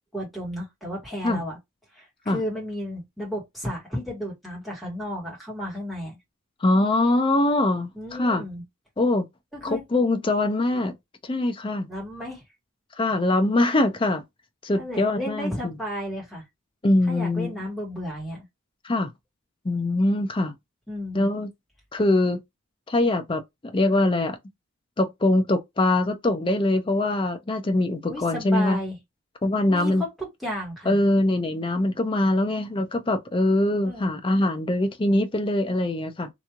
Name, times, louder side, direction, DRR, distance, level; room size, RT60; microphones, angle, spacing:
voice 1, 0.1-1.6 1.9-6.2 7.9-8.6 9.5-9.8 11.9-12.4 14.7-16.4 17.1-18.4 20.9-21.3 28.1-29.0 29.7-31.0 33.8-34.1, equal, ahead, 1.4 m, -33 dB
voice 2, 6.6-8.4 9.0-9.3 9.6-10.9 11.2-11.9 13.0-14.2 14.6-15.8 16.8-17.5 18.8-19.1 19.6-20.5 21.1-21.5 21.9-22.4 22.9-24.4 25.0-28.8 29.4-30.0 30.9-36.3, left 2 dB, 25° left, 0.5 m, -23 dB
3.0 x 2.7 x 2.4 m
head